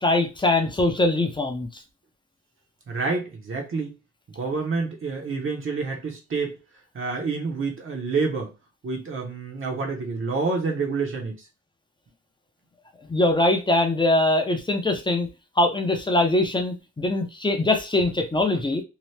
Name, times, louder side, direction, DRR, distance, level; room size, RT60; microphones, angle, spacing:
voice 1, 0.0-1.7 13.1-15.3 15.6-18.8, left 2 dB, 15° left, 0.4 m, -22 dB
voice 2, 2.9-3.9 4.3-6.6 6.9-8.5 8.8-11.4, right 4 dB, 45° right, 0.7 m, -28 dB
2.8 x 2.0 x 3.1 m
wide cardioid pair, 140°, 29 cm